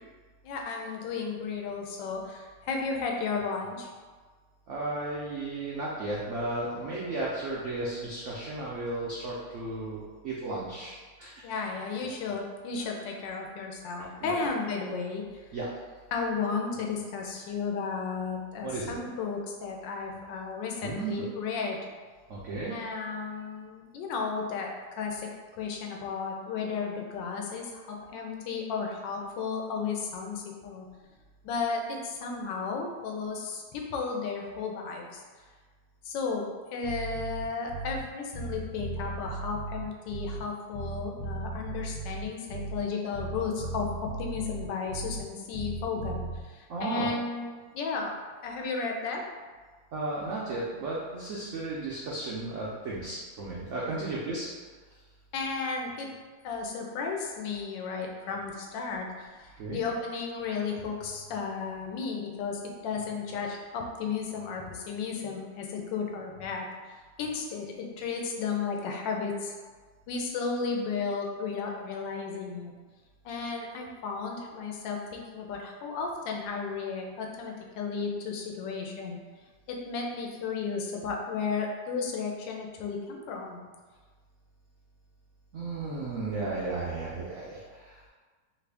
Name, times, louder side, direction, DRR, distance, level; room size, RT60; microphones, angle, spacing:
voice 1, 0.4-3.9 11.4-15.2 16.1-21.8 22.7-25.2 25.6-30.9 31.4-35.2 36.0-43.9 44.2-48.1 48.4-49.2 53.8-53.9 55.3-56.1 56.4-66.7 67.2-69.5 70.1-72.7 73.2-79.2 79.7-83.6, left 5 dB, 85° left, 1 dB, 1.3 m, -34 dB
voice 2, 4.7-11.3 14.2-14.5 15.5-15.7 18.6-18.9 20.8-21.3 22.3-22.7 46.7-47.1 49.9-54.5 59.6-59.8 85.5-88.1, right 2 dB, 90° right, -5 dB, 0.6 m, -34 dB
Bass guitar, 36.8-38.1 38.3-40.5 40.7-42.9 43.1-45.3 45.5-46.4, right 3 dB, 50° left, 0.9 m, -37 dB
3.1 x 2.5 x 3.3 m, 1.4 s
omnidirectional pair, 1.9 m